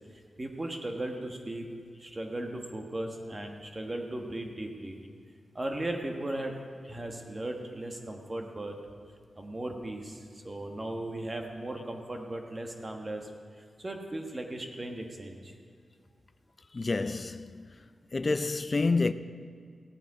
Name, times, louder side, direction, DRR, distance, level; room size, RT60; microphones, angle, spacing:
voice 1, 0.1-1.7 2.0-5.0 5.5-6.6 6.9-8.8 9.4-13.3 13.6-15.5, right 1 dB, 25° right, 1.4 m, -37 dB
voice 2, 16.7-17.6 18.1-19.1, left 3 dB, 35° left, 0.5 m, -28 dB
16.0 x 9.1 x 4.8 m
wide cardioid pair, 105°, 0 cm